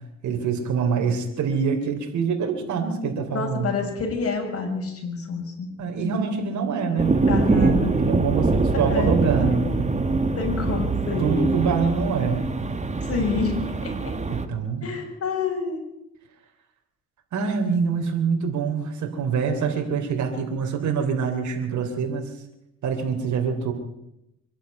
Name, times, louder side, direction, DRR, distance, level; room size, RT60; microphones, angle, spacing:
voice 1, 0.2-3.7 5.8-7.2 7.5-9.6 11.2-12.4 14.3-14.8 17.3-22.3 22.8-23.7, right 5 dB, 70° right, 4 dB, 3.4 m, -25 dB
voice 2, 3.3-5.7 7.3-7.9 8.9-9.1 9.6-9.9 10.2-11.2 13.0-13.9 14.8-15.8, left 4 dB, 50° left, 2 dB, 6.9 m, -28 dB
sound 1, 7.0-14.5, right 3 dB, 25° right, 1.9 m, -23 dB
24.5 x 11.5 x 9.2 m, 0.86 s
cardioid pair, 90°, 30 cm